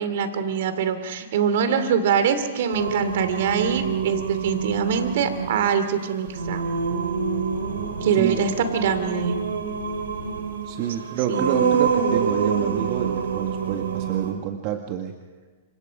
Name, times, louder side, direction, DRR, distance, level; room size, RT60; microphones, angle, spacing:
voice 1, 0.0-6.6 8.0-9.4 11.3-11.8, right 7 dB, 65° right, 9 dB, 2.8 m, -24 dB
Singing, 2.7-14.3, right 6 dB, 80° right, 3.6 m, -27 dB
voice 2, 10.6-15.1, right 10 dB, 45° right, 5 dB, 1.8 m, -28 dB
29.5 x 26.0 x 5.3 m, 1.4 s
hypercardioid pair, 125°, 0 cm